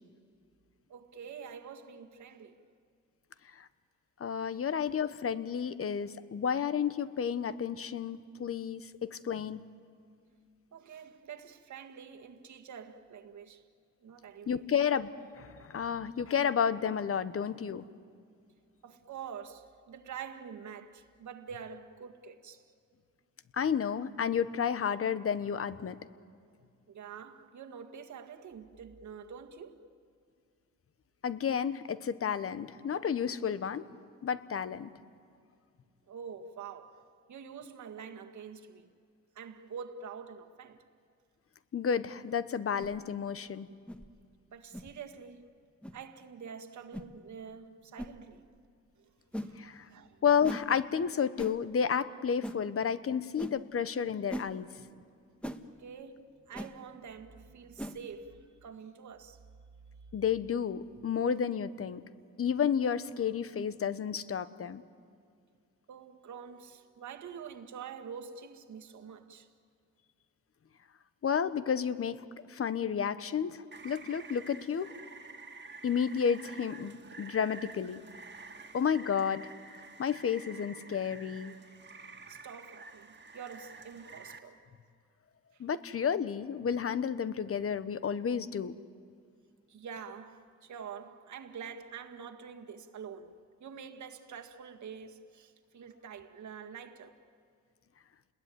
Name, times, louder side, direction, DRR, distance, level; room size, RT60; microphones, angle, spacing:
voice 1, 0.9-2.6 10.7-13.6 14.0-14.6 15.6-15.7 18.8-22.7 26.9-29.8 36.1-38.9 39.4-40.8 44.5-45.5 45.9-48.4 49.0-49.1 49.4-50.2 55.8-59.4 65.9-69.5 82.3-84.6 85.5-85.6 89.7-93.3 93.6-97.2, right 7 dB, 70° right, 1.9 m, -46 dB
voice 2, 4.2-9.6 14.5-15.1 15.4-17.9 23.5-26.0 31.2-33.9 34.2-34.9 41.7-43.7 49.6-49.9 50.2-54.7 60.1-62.0 62.4-64.8 71.2-74.9 75.8-78.0 78.7-79.5 80.0-81.6 85.6-88.7, left 7 dB, 50° left, 1.1 m, -31 dB
sound 1, 42.8-43.0 43.9-44.1 44.7-44.9 45.8-46.0 46.9-47.1 48.0-48.1 49.3-49.5 50.4-50.7 51.4-51.6 52.4-52.6 53.4-53.6 54.3-54.5 55.4-55.6 56.5-56.7 57.8-58.0, equal, 5° left, 1.4 m, -39 dB
Rain, 73.7-84.4, right 3 dB, 35° right, 2.0 m, -50 dB
29.5 x 21.0 x 9.3 m
cardioid pair, 95°, 30 cm